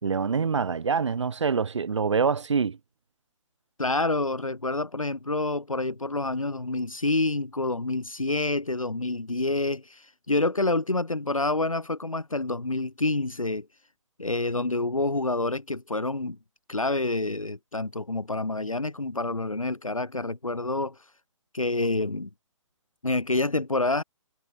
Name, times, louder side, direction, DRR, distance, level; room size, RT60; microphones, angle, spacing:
voice 1, 0.0-2.8, right 5 dB, 60° right, 6.6 m, -25 dB
voice 2, 3.8-13.7 14.2-16.4 16.7-21.0 21.5-22.3 23.0-24.0, left 2 dB, 80° left, 2.6 m, -27 dB
figure-of-eight pair, 135°, 17 cm